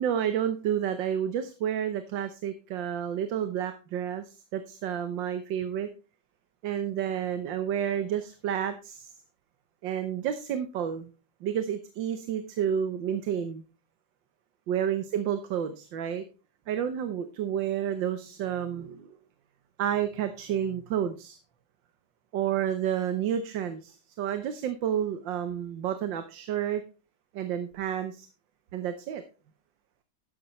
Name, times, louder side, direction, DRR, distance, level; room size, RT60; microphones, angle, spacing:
voice 1, 0.0-5.9 6.6-9.1 9.8-11.1 11.4-13.6 14.7-16.2 16.7-19.1 19.8-21.4 22.3-26.8 27.3-28.3 28.7-29.2, right 9 dB, 85° right, 9 dB, 1.6 m, -30 dB
12.5 x 10.0 x 3.1 m, 0.32 s
omnidirectional pair, 2.0 m